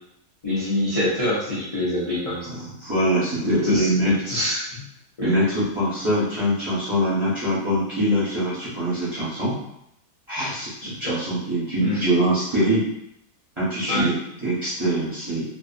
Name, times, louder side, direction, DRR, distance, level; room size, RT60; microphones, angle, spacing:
voice 1, 0.4-2.6 3.4-4.8 5.2-5.4 11.0-11.2 11.8-12.1 13.9-14.1, left 1 dB, 40° left, -9 dB, 0.5 m, -26 dB
voice 2, 2.4-4.1 5.2-9.5 10.3-12.9 13.6-15.6, equal, 25° right, -10 dB, 0.7 m, -23 dB
2.6 x 2.4 x 2.5 m, 0.79 s
omnidirectional pair, 1.6 m